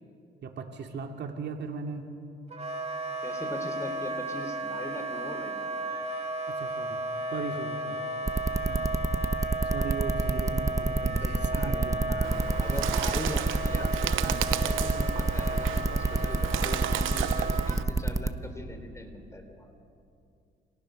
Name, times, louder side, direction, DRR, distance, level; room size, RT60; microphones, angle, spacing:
voice 1, 0.4-2.1 6.5-7.0 7.3-8.1 8.7-9.0 9.6-12.2 12.7-12.9 14.3-14.5, right 4 dB, 60° right, 4 dB, 2.6 m, -37 dB
Wind instrument woodwind instrument, 2.5-17.8, right 2 dB, 30° right, 2.9 m, -34 dB
voice 2, 3.2-5.6 11.2-19.7, left 1 dB, 15° left, 6 dB, 4.0 m, -41 dB
sound 1, 8.3-18.3, right 2 dB, 15° right, 1.1 m, -27 dB
Bird, 12.2-17.8, right 13 dB, 85° right, 0.9 m, -34 dB
29.0 x 27.0 x 6.6 m, 2.5 s
cardioid pair, 90°, 20 cm